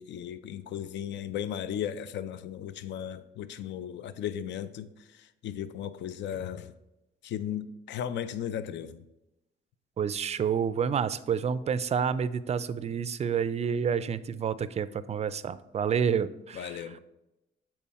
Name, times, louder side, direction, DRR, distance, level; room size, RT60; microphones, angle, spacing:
voice 1, 0.0-6.7 7.2-9.0 16.5-17.0, left 9 dB, 65° left, 0.4 m, -36 dB
voice 2, 10.0-16.8, right 7 dB, 35° right, 0.4 m, -29 dB
7.2 x 4.5 x 4.2 m
cardioid pair, 90°, 20 cm